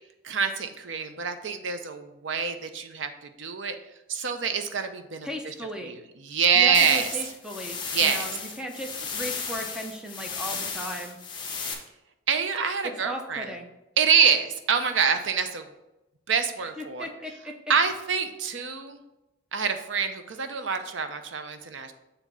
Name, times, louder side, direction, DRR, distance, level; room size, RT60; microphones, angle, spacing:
voice 1, 0.2-3.8 4.1-5.5 5.8-7.2 7.9-8.4 12.3-13.5 14.0-15.7 16.3-17.1 17.7-19.0 19.5-21.9, right 6 dB, 70° right, 8 dB, 0.6 m, -26 dB
voice 2, 5.2-5.9 6.5-11.2 13.0-13.7 16.8-17.5, equal, 5° right, 3 dB, 0.7 m, -36 dB
sound 1, 6.7-11.7, left 5 dB, 25° left, 1.0 m, -34 dB
7.2 x 3.4 x 5.4 m, 0.97 s
head